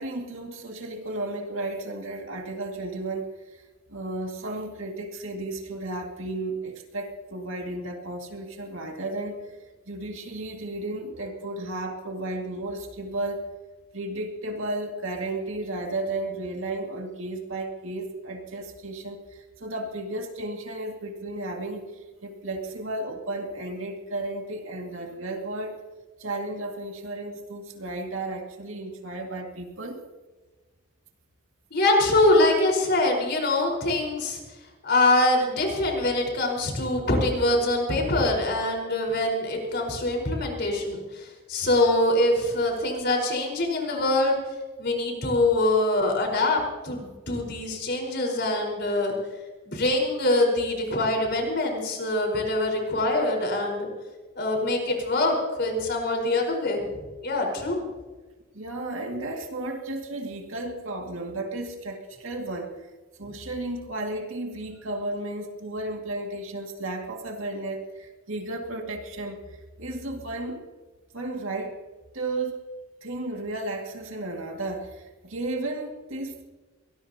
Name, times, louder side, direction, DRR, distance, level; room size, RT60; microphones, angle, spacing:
voice 1, 0.0-3.6 3.9-9.4 9.9-13.5 13.9-25.8 26.2-30.0 58.5-62.9 63.2-70.6 71.1-71.8 72.1-72.6 73.0-76.4, right 2 dB, 70° right, 2 dB, 2.3 m, -33 dB
voice 2, 31.7-34.4 34.8-44.3 44.8-49.1 49.7-53.9 54.4-56.9 57.2-57.8, left 2 dB, 50° left, 1 dB, 4.8 m, -24 dB
23.0 x 19.5 x 2.9 m, 1.3 s
head